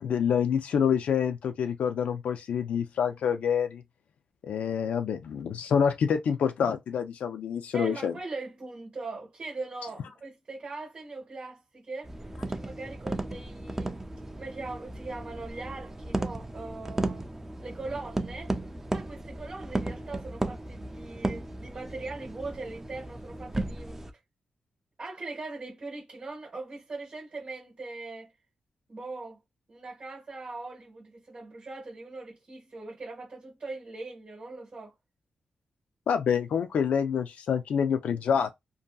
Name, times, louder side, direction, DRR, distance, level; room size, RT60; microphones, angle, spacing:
voice 1, 0.0-3.8 4.4-8.1 36.1-38.5, left 7 dB, 85° left, 0.3 m, -27 dB
voice 2, 7.7-12.1 12.5-14.0 14.4-17.3 17.6-18.5 18.9-24.0 25.0-28.3 28.9-29.4 29.7-34.9, right 3 dB, 40° right, 1.2 m, -40 dB
sound 1, 12.0-24.1, right 2 dB, 15° right, 0.4 m, -35 dB
2.6 x 2.6 x 2.3 m
wide cardioid pair, 115°, 2 cm